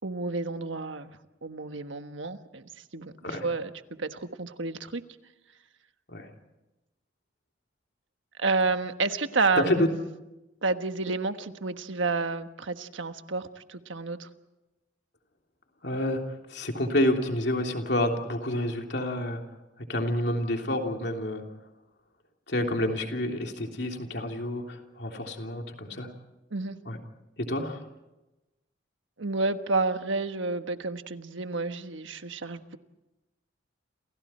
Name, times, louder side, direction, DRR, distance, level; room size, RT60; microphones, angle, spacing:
voice 1, 0.0-1.1 1.4-2.6 2.9-3.7 4.0-5.0 8.4-9.8 10.6-14.3 26.5-26.8 29.2-32.8, right 3 dB, 85° right, 8 dB, 1.4 m, -30 dB
voice 2, 9.6-9.9 15.8-19.4 19.9-21.4 22.5-26.1 26.8-27.0 27.4-27.8, left 1 dB, 60° left, 3 dB, 3.1 m, -29 dB
29.5 x 28.0 x 4.4 m, 1.0 s
head